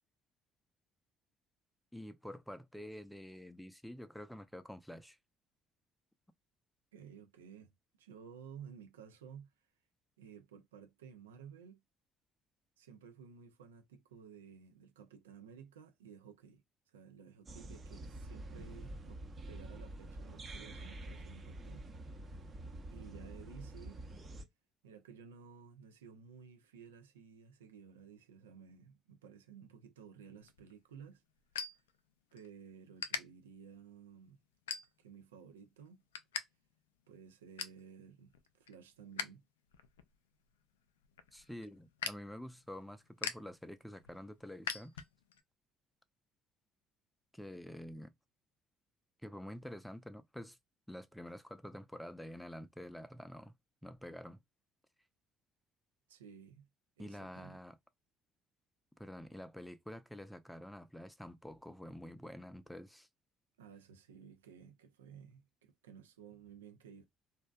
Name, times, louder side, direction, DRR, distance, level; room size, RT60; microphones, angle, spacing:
voice 1, 1.9-5.2 41.3-45.0 47.3-48.1 49.2-50.6 50.9-53.6 53.8-54.4 57.0-57.8 59.0-63.1, equal, 5° left, 0.5 m, -48 dB
voice 2, 6.9-7.7 8.0-9.5 10.2-11.8 12.8-19.2 19.5-21.9 22.9-24.0 24.8-31.2 32.3-34.4 35.0-36.0 37.1-39.4 56.1-56.7 57.0-57.6 63.6-67.1, right 7 dB, 90° right, 0.4 m, -55 dB
sound 1, 17.5-24.4, right 1 dB, 35° right, 0.7 m, -47 dB
sound 2, 30.4-32.5 32.8-33.2 33.8-34.0 34.5-35.2 35.6-36.4 36.7-36.8 37.2-37.8 38.3-39.3 39.6-45.4, left 7 dB, 90° left, 0.3 m, -43 dB
2.6 x 2.2 x 2.3 m
hypercardioid pair, 55°, 0 cm